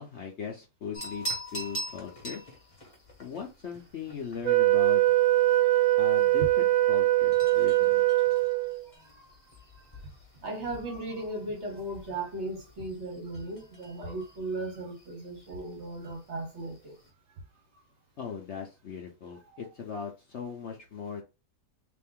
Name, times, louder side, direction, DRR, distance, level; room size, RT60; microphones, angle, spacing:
voice 1, 0.0-2.4 3.2-5.0 6.0-8.1 18.2-21.2, left 6 dB, 55° left, 0.8 m, -39 dB
sound 1, 0.9-17.1, right 1 dB, 25° left, 1.0 m, -45 dB
Wind instrument woodwind instrument, 4.4-8.8, right 18 dB, 75° right, 0.7 m, -22 dB
voice 2, 9.0-9.3 9.7-10.0 10.4-17.0 19.5-19.6, right 2 dB, 50° right, 1.0 m, -37 dB
3.5 x 2.6 x 3.6 m
omnidirectional pair, 1.8 m